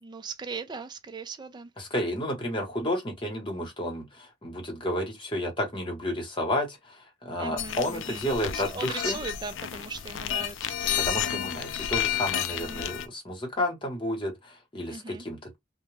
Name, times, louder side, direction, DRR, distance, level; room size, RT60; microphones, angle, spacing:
voice 1, 0.0-1.7 7.4-8.3 8.5-11.5 12.6-12.9 14.8-15.3, right 4 dB, 25° right, 0.3 m, -39 dB
voice 2, 1.8-9.2 11.0-15.6, left 1 dB, 25° left, 1.1 m, -31 dB
sound 1, 7.6-13.1, left 11 dB, 75° left, 0.3 m, -31 dB
2.3 x 2.1 x 3.1 m
head